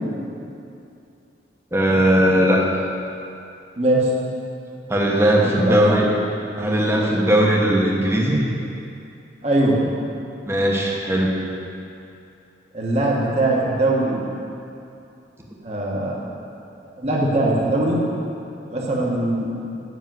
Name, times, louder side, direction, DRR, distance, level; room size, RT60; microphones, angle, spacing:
voice 1, 1.7-2.6 4.9-6.1 6.6-8.5 10.5-11.4, right 1 dB, 15° right, -2 dB, 1.1 m, -18 dB
voice 2, 3.8-4.1 5.4-5.9 9.4-9.8 12.7-14.3 15.6-16.2 17.0-18.0 18.7-19.5, right 2 dB, 35° right, -4 dB, 1.3 m, -21 dB
8.3 x 6.1 x 7.7 m, 2.7 s
head